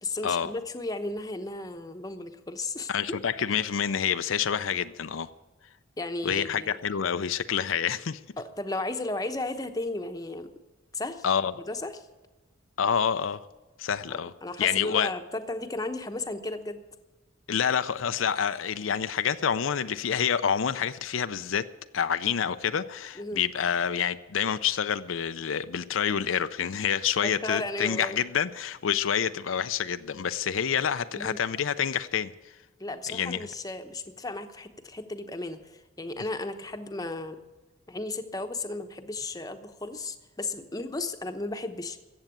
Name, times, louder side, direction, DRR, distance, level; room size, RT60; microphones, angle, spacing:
voice 1, 0.0-3.2 6.0-6.8 8.4-10.5 10.9-11.2 11.7-11.9 14.1-16.8 23.2-23.4 27.2-28.2 31.1-31.4 32.8-37.4 37.9-42.0, left 2 dB, 20° left, 0.9 m, -34 dB
voice 2, 2.9-5.3 6.2-8.2 11.2-11.5 12.8-13.4 13.8-14.3 14.6-15.1 17.5-21.7 21.9-32.3 33.1-33.4, left 8 dB, 85° left, 0.5 m, -27 dB
14.5 x 8.0 x 9.1 m
head